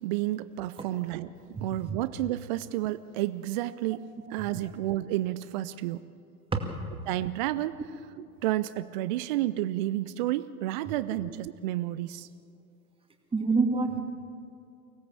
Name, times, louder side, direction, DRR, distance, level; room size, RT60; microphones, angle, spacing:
voice 1, 0.0-6.1 7.1-7.8 8.2-12.3, right 15 dB, 30° right, 14 dB, 0.4 m, -31 dB
voice 2, 13.3-14.0, right 4 dB, 10° right, 4 dB, 2.2 m, -26 dB
24.0 x 17.0 x 7.4 m, 2.5 s
figure-of-eight pair, 95°, 48 cm